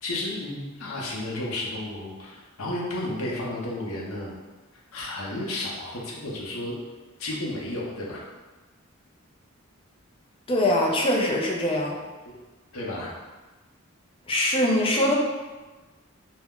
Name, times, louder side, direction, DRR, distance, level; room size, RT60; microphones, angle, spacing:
voice 1, 0.0-4.3 4.9-6.7 7.2-8.2 12.3-12.4 12.7-13.2, left 1 dB, 80° left, -4 dB, 0.6 m, -32 dB
voice 2, 10.5-12.0 14.3-15.1, left 1 dB, 25° left, -2 dB, 0.4 m, -22 dB
2.3 x 2.0 x 3.5 m, 1.2 s
head